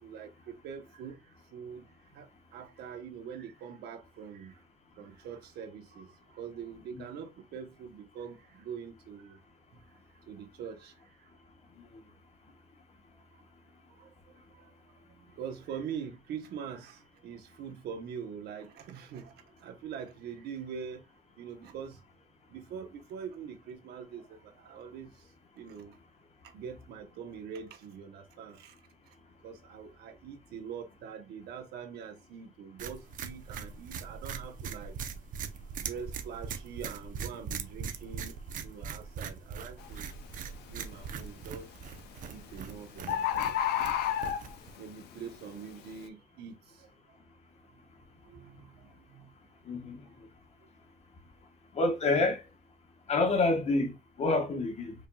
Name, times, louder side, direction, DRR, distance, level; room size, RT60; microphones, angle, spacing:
voice 1, 0.0-4.6 5.0-9.4 9.9-11.3 13.3-13.4 13.9-21.1 21.4-22.0 22.5-26.0 26.4-28.8 29.0-35.0 35.8-40.1 40.7-42.0 42.3-43.6 44.8-47.2 48.2-49.3 50.0-50.1, right 7 dB, 70° right, 1.0 m, -44 dB
sound 1, 32.8-44.8, right 6 dB, 50° right, 0.6 m, -41 dB
Bird, 39.8-40.0 40.6-41.0 42.1-42.2 42.4-42.5 42.7-42.8 43.1-44.8 45.4-45.5, left 10 dB, 75° left, 0.5 m, -30 dB
voice 2, 49.7-50.0 51.7-52.4 53.1-53.9 54.2-54.9, left 2 dB, 40° left, 1.0 m, -27 dB
4.9 x 2.7 x 2.3 m
cardioid pair, 110°, 17 cm